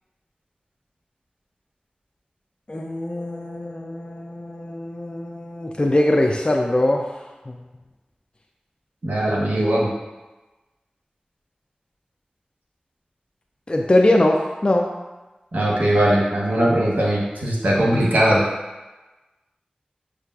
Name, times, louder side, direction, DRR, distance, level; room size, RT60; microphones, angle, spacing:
voice 1, 2.7-7.2 7.5-7.6 13.7-14.9, left 1 dB, 35° left, 1 dB, 0.3 m, -21 dB
voice 2, 9.0-9.9 15.5-18.4, right 1 dB, 70° right, -4 dB, 0.9 m, -19 dB
6.6 x 2.4 x 2.3 m, 1.1 s
wide cardioid pair, 40°, 3 cm